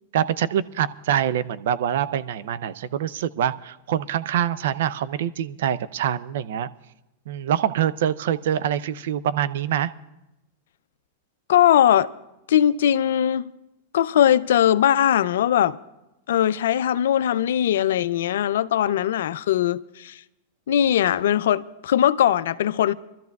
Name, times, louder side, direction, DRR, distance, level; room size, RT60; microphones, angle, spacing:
voice 1, 0.1-6.7 7.3-9.9, right 10 dB, 70° right, 0.5 m, -25 dB
voice 2, 11.5-12.1 12.5-13.5 13.9-15.8 16.3-20.2 20.7-22.9, left 10 dB, 75° left, 0.4 m, -20 dB
27.0 x 13.0 x 2.3 m
hypercardioid pair, 110°, 0 cm